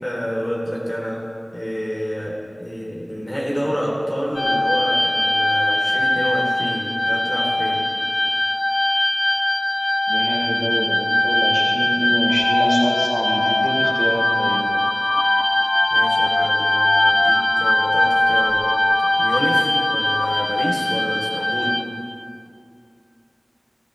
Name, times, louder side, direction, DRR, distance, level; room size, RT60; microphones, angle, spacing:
voice 1, 0.0-7.9 15.9-18.7 19.0-21.8, equal, 25° left, -4 dB, 3.4 m, -28 dB
sound 1, 4.4-21.8, left 1 dB, 45° left, 1.4 m, -21 dB
voice 2, 10.1-14.6, equal, 10° right, -3 dB, 3.9 m, -26 dB
sound 2, 12.3-20.7, left 2 dB, 75° left, 0.4 m, -25 dB
24.0 x 15.0 x 3.3 m, 2.4 s
wide cardioid pair, 50°, 0 cm